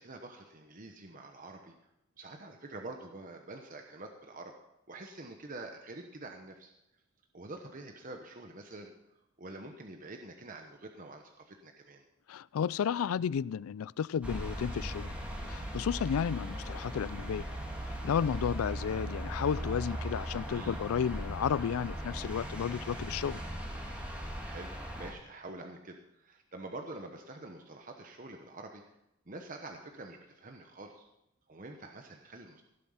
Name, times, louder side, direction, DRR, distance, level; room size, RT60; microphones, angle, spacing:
voice 1, 0.0-1.7 2.2-4.5 4.9-6.7 7.3-8.9 9.4-12.0 20.5-20.8 24.4-28.8 29.3-31.1 31.5-32.6, right 2 dB, 40° right, 3 dB, 1.0 m, -46 dB
voice 2, 12.3-15.1 15.4-17.4 18.0-23.4, left 7 dB, 80° left, 21 dB, 0.4 m, -32 dB
sound 1, 14.2-25.1, equal, 5° right, 2.2 m, -38 dB
17.0 x 7.6 x 5.7 m, 0.85 s
head